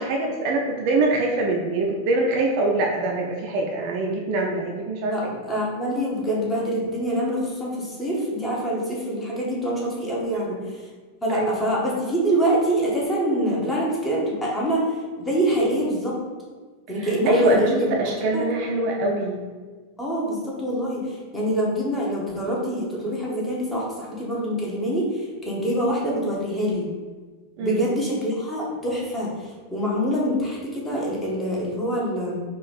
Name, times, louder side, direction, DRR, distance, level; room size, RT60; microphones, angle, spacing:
voice 1, 0.0-5.4 11.3-11.6 17.0-19.4 27.6-27.9, right 2 dB, 45° right, 0 dB, 0.4 m, -23 dB
voice 2, 5.0-10.8 11.2-14.9 15.2-16.2 16.9-17.9 18.3-18.5 20.0-26.9 27.6-29.3 29.7-32.4, right 1 dB, 10° left, -5 dB, 1.0 m, -25 dB
3.7 x 2.4 x 3.3 m, 1.4 s
figure-of-eight pair, 90°, 0 cm